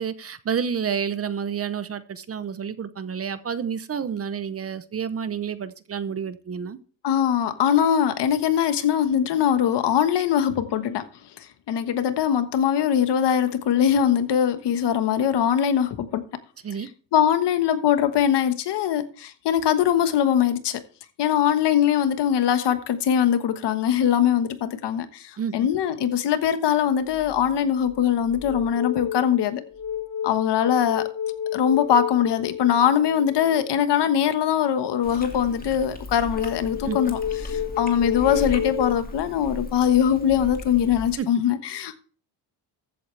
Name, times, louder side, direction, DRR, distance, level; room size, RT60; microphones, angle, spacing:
voice 1, 0.0-6.8 16.6-16.9 25.4-25.7 36.9-37.1 41.2-41.3, right 7 dB, 30° right, 0.7 m, -29 dB
voice 2, 7.0-11.1 11.7-16.2 16.8-20.8 21.2-29.6 30.2-31.1 31.5-42.0, left 9 dB, 65° left, 1.4 m, -22 dB
sound 1, 27.1-27.4 27.9-33.8 36.3-39.0, left 9 dB, 40° left, 0.9 m, -31 dB
Chewing mastication, 35.0-41.2, left 1 dB, 20° left, 2.0 m, -37 dB
14.5 x 8.5 x 3.3 m
cardioid pair, 135°, 44 cm